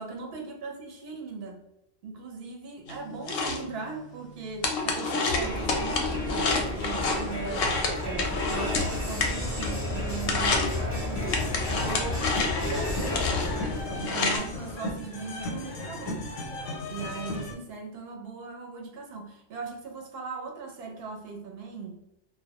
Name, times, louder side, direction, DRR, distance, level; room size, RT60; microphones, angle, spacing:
voice 1, 0.0-1.6 2.0-12.3 12.7-13.6 14.0-16.3 16.6-22.0, right 4 dB, 60° right, 2 dB, 0.7 m, -39 dB
sound 1, 2.9-9.9 10.2-10.8 11.3-14.4, left 3 dB, 65° left, 0.6 m, -29 dB
Crowd, 5.3-14.1, left 1 dB, 20° left, 0.5 m, -32 dB
sound 2, 11.1-17.5, left 2 dB, 85° left, 0.9 m, -36 dB
2.2 x 2.1 x 2.8 m, 0.86 s
omnidirectional pair, 1.3 m